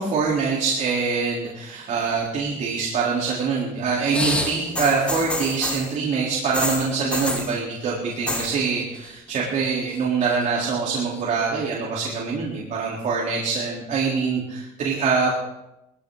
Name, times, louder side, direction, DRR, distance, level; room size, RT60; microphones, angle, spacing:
voice 1, 0.0-15.3, right 5 dB, 60° right, -5 dB, 3.8 m, -24 dB
sound 1, 4.0-5.9 6.5-7.5 8.1-8.5 8.8-9.3 9.6-10.4 11.2-11.3, left 1 dB, 10° left, 2.5 m, -28 dB
20.0 x 15.5 x 4.0 m, 0.88 s
cardioid pair, 125°, 15 cm